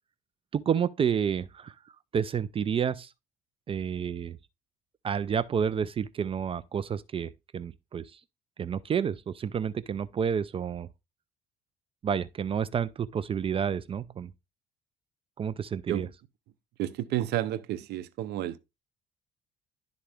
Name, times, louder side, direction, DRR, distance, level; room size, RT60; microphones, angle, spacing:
voice 1, 0.5-1.7 2.1-3.1 3.7-4.4 5.0-8.0 8.6-10.9 12.0-14.3 15.4-16.1, right 7 dB, 35° right, 0.4 m, -30 dB
voice 2, 16.8-18.6, right 13 dB, 80° right, 0.7 m, -31 dB
11.5 x 3.8 x 3.4 m
cardioid pair, 110°, 17 cm